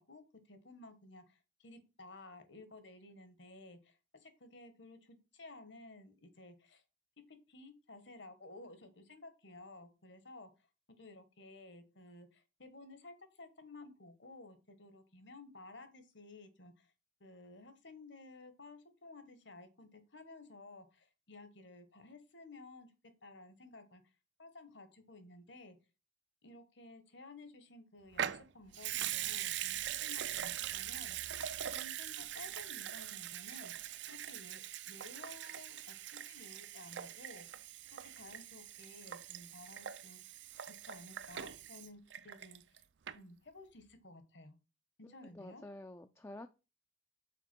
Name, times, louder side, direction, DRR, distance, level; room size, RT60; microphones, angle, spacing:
voice 1, 0.0-6.8 7.3-10.5 10.9-16.9 17.2-22.9 23.2-24.0 24.4-25.8 26.4-31.2 31.7-33.7 34.1-37.5 37.9-40.4 40.7-42.8 43.1-44.6 45.0-45.6, left 2 dB, 70° left, 10 dB, 1.3 m, -55 dB
Water tap faucet / Sink (filling or washing) / Liquid, 28.1-42.8 43.1-43.2, right 11 dB, 65° right, 0.4 m, -42 dB
voice 2, 45.0-46.5, left 1 dB, 15° left, 8 dB, 0.3 m, -50 dB
5.8 x 4.4 x 6.0 m, 0.30 s
head